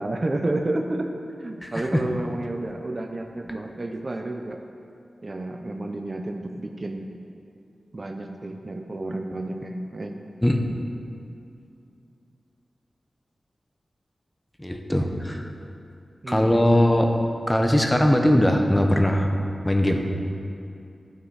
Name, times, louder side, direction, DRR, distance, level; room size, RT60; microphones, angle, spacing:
voice 1, 0.0-4.6 5.2-7.1 7.9-10.2 16.2-16.8, right 2 dB, 40° right, 4 dB, 0.6 m, -31 dB
voice 2, 1.6-2.0 10.4-10.6 14.6-15.5 16.3-17.1 17.5-19.3 19.6-20.1, left 1 dB, 10° left, 3 dB, 0.8 m, -20 dB
11.5 x 6.5 x 4.7 m, 2.5 s
wide cardioid pair, 90°, 0 cm